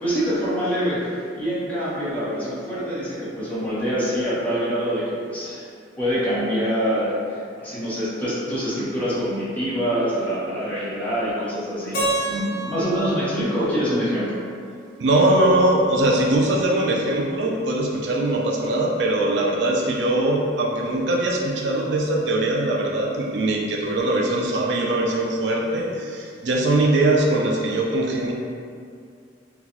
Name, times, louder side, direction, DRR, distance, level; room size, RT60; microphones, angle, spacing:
voice 1, 0.0-5.7 6.0-12.0 12.3-14.3, equal, 10° left, -11 dB, 0.9 m, -25 dB
Keyboard (musical), 11.9-14.9, right 2 dB, 60° left, 0.7 m, -30 dB
voice 2, 15.0-28.3, right 1 dB, 70° right, -1 dB, 0.4 m, -21 dB
3.9 x 2.2 x 2.9 m, 2.3 s
head